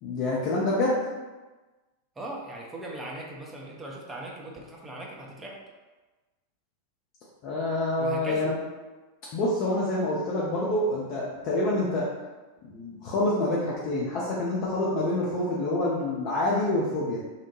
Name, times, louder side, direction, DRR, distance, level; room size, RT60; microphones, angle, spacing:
voice 1, 0.0-0.9 7.4-8.5 9.3-12.0 12.6-17.2, left 1 dB, 40° left, -5 dB, 0.5 m, -27 dB
voice 2, 2.2-5.6 8.0-8.5, right 1 dB, 15° right, -2 dB, 0.5 m, -39 dB
2.7 x 2.1 x 2.9 m, 1.2 s
figure-of-eight pair, 90°, 0 cm